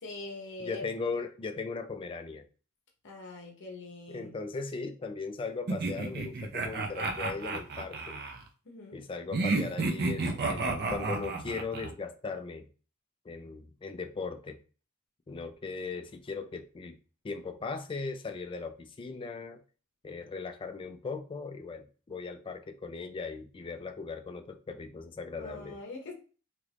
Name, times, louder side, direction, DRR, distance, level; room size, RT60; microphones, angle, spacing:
voice 1, 0.0-0.9 3.0-4.3 8.6-9.0 25.4-26.1, left 2 dB, 55° left, 1 dB, 0.7 m, -43 dB
voice 2, 0.6-2.4 4.1-8.2 8.9-12.7 13.3-14.6 15.3-16.9 17.2-19.6 20.0-25.8, left 4 dB, 25° left, 7 dB, 0.3 m, -38 dB
sound 1, 5.7-8.4 9.3-11.9, right 3 dB, 45° right, 0.5 m, -31 dB
2.9 x 2.5 x 3.2 m, 0.37 s
head